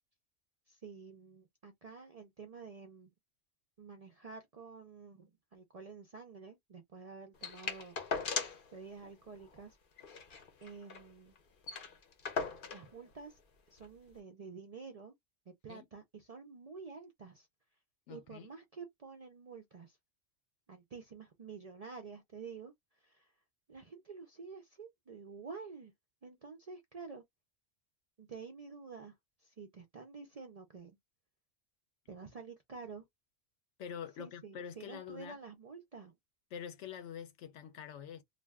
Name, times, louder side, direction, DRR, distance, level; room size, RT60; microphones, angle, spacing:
voice 1, 0.7-3.1 3.8-8.0 8.7-9.8 10.6-11.3 12.7-13.4 13.7-15.1 15.5-17.5 18.1-20.0 20.7-23.3 23.7-25.9 26.2-27.2 28.2-29.1 29.4-31.0 32.1-33.0 34.2-36.2, right 5 dB, 55° right, 0.4 m, -49 dB
sound 1, 7.4-8.7 9.0-9.1 9.4-9.6 10.0-11.1 11.4-11.5 11.6-12.9 13.8-13.9, left 5 dB, 55° left, 0.8 m, -39 dB
voice 2, 18.1-18.5 33.8-35.4 36.5-38.2, left 8 dB, 75° left, 0.9 m, -45 dB
2.5 x 2.2 x 3.4 m
omnidirectional pair, 1.2 m